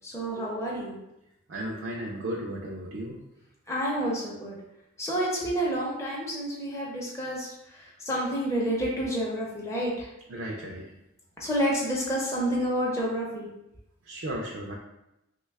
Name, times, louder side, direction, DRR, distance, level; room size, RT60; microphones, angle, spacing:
voice 1, 0.0-1.0 3.7-4.6 5.0-10.1 11.4-13.5, equal, 15° left, -4 dB, 0.5 m, -29 dB
voice 2, 1.5-3.2 10.3-10.9 14.0-14.7, right 1 dB, 65° right, -2 dB, 0.4 m, -35 dB
3.1 x 2.2 x 3.3 m, 0.88 s
head